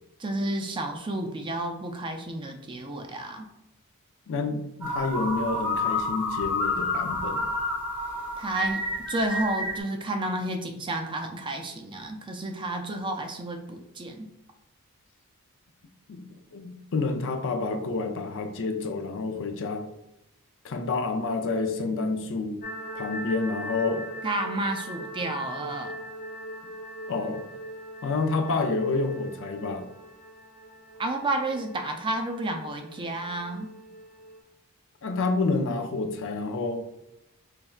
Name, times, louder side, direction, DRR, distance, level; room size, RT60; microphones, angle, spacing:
voice 1, 0.2-3.5 8.4-8.8 9.1-14.3 24.2-25.9 31.0-33.7, right 1 dB, 20° right, 4 dB, 0.4 m, -31 dB
voice 2, 4.3-7.4 16.1-19.8 20.6-22.6 23.0-24.0 27.1-27.4 28.0-29.9 35.0-36.9, left 3 dB, 60° left, 6 dB, 0.5 m, -29 dB
sound 1, 4.8-9.8, left 2 dB, 5° right, 0.8 m, -29 dB
sound 2, 22.6-34.4, equal, 40° left, 0.9 m, -41 dB
4.2 x 3.2 x 2.3 m, 0.89 s
head